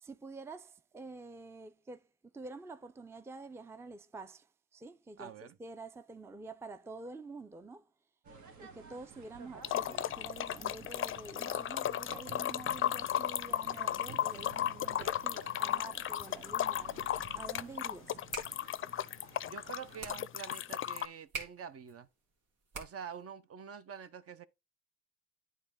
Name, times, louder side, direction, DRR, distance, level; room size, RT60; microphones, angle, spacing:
voice 1, 0.0-2.1 2.3-7.9 8.6-18.2, right 3 dB, 10° right, 0.5 m, -48 dB
voice 2, 5.2-5.5 19.4-22.1 22.7-24.5, right 7 dB, 50° right, 0.8 m, -46 dB
sound 1, 8.2-20.2, right 5 dB, 70° right, 1.8 m, -53 dB
sound 2, 9.6-21.1, left 11 dB, 45° left, 0.4 m, -35 dB
sound 3, 18.2-23.3, right 3 dB, 90° right, 2.4 m, -48 dB
9.4 x 3.9 x 3.6 m
cardioid pair, 90°, 30 cm